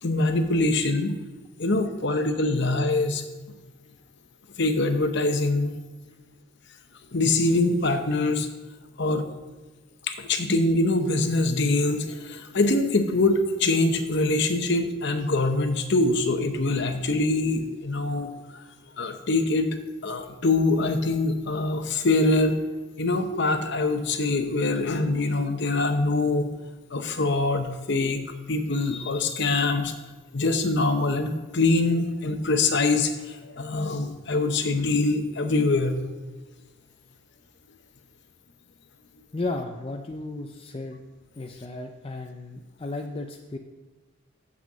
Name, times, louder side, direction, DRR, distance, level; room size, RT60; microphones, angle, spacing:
voice 1, 0.0-1.2 1.6-3.2 4.6-5.7 7.1-8.5 9.0-9.3 10.1-18.6 19.0-19.8 20.0-22.6 23.0-26.5 26.9-28.2 28.5-29.9 30.3-35.9, left 2 dB, 55° left, 7 dB, 0.9 m, -24 dB
voice 2, 39.3-41.0 41.4-43.6, left 2 dB, 25° left, 3 dB, 0.4 m, -34 dB
7.1 x 6.1 x 7.4 m, 1.2 s
head